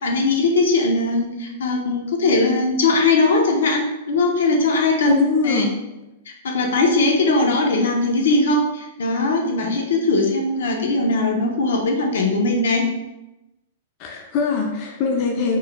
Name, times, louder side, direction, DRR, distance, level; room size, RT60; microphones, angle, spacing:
voice 1, 0.0-5.6 6.4-12.9, left 3 dB, 85° left, 1 dB, 0.8 m, -20 dB
voice 2, 5.0-5.7 14.0-15.6, left 4 dB, 35° left, 1 dB, 0.5 m, -22 dB
4.3 x 3.2 x 2.2 m, 0.93 s
hypercardioid pair, 160°, 0 cm